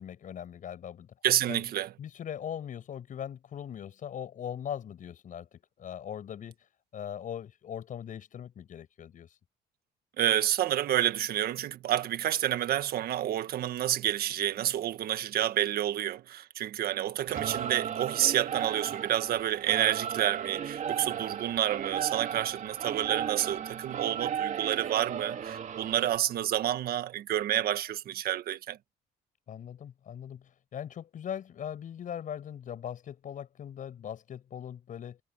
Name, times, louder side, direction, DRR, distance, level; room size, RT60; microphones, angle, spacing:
voice 1, 0.0-1.1 1.5-1.6 2.0-9.4 29.5-35.2, left 9 dB, 50° left, 6.1 m, -40 dB
voice 2, 1.2-1.9 10.2-28.8, right 12 dB, 65° right, 1.6 m, -29 dB
Singing / Musical instrument, 17.3-26.2, right 8 dB, 45° right, 2.5 m, -35 dB
cardioid pair, 110°, 17 cm